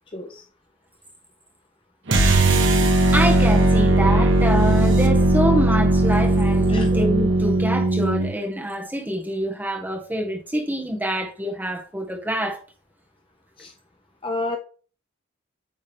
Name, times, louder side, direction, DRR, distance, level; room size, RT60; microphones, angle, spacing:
voice 1, 0.1-0.4 6.7-6.9 13.6-13.7 14.2-14.6, left 2 dB, 25° left, 0.6 m, -29 dB
sound 1, 2.1-8.3, right 2 dB, 60° right, 1.4 m, -18 dB
voice 2, 3.1-12.6, right 1 dB, 10° right, 1.5 m, -26 dB
8.9 x 3.7 x 3.5 m
head